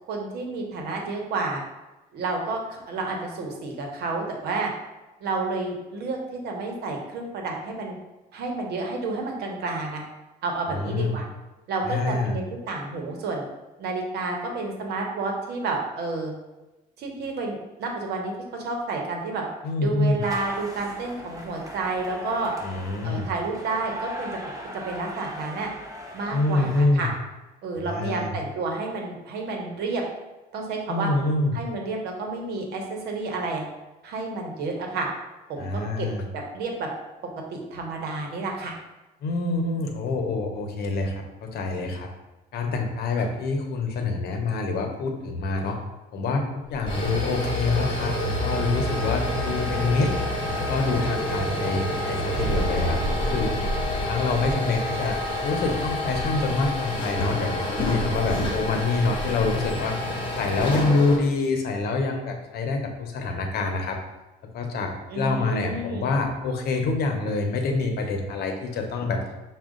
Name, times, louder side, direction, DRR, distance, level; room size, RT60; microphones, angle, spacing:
voice 1, 0.1-1.6 2.1-4.7 5.2-8.0 8.3-10.0 10.4-11.2 11.7-13.4 13.8-16.3 17.0-19.4 19.8-22.5 23.0-24.3 24.7-25.7 26.1-27.1 27.6-30.0 30.5-31.1 31.5-33.7 34.0-35.1 35.5-36.9 37.5-38.7 65.1-66.1, right 3 dB, 75° right, 1 dB, 1.0 m, -30 dB
voice 2, 10.7-11.2 11.8-12.4 19.6-20.2 22.6-23.3 26.3-27.1 27.9-28.3 30.9-31.6 35.6-36.2 39.2-42.1 42.5-45.8 46.1-50.1 50.5-53.5 53.9-60.0 60.4-64.0 64.5-69.2, left 3 dB, 70° left, 4 dB, 0.8 m, -26 dB
sound 1, 20.2-26.8, equal, 20° right, 0.9 m, -39 dB
sound 2, 46.7-61.2, left 1 dB, 30° left, 1.2 m, -28 dB
sound 3, 48.6-51.0 52.3-54.8 55.1-57.2 57.7-59.8, right 1 dB, 50° right, 1.3 m, -35 dB
6.0 x 2.4 x 3.7 m, 1.1 s
cardioid pair, 110°, 17 cm